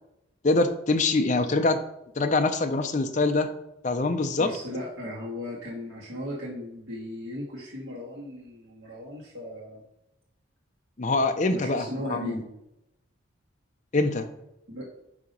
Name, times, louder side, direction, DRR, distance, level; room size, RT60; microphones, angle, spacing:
voice 1, 0.4-1.8 2.2-3.5 3.8-4.5 11.0-12.4 13.9-14.3, left 3 dB, 40° left, 6 dB, 0.6 m, -24 dB
voice 2, 4.4-9.8 11.5-12.5 14.7-14.9, left 1 dB, 65° right, -6 dB, 1.5 m, -37 dB
8.2 x 2.9 x 5.3 m, 0.85 s
head